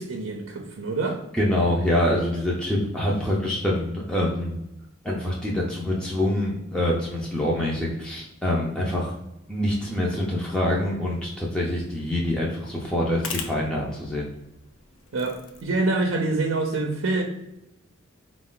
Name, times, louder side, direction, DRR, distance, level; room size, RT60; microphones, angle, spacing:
voice 1, 0.0-1.2 15.1-17.2, right 2 dB, 90° right, 2 dB, 0.6 m, -26 dB
voice 2, 1.3-4.5 5.0-9.1 9.5-14.3, left 1 dB, 5° left, -4 dB, 0.5 m, -25 dB
sound 1, 10.4-15.9, left 5 dB, 75° left, 0.6 m, -42 dB
4.5 x 2.5 x 3.7 m, 0.89 s
head